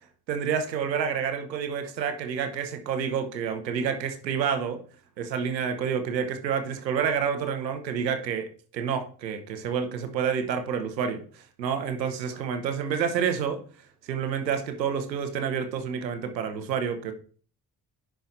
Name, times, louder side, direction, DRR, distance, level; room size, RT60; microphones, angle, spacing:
voice 1, 0.3-4.8 5.2-13.6 14.1-17.1, right 7 dB, 85° right, 7 dB, 0.9 m, -29 dB
10.5 x 4.5 x 2.6 m, 0.40 s
figure-of-eight pair, 40°, 50 cm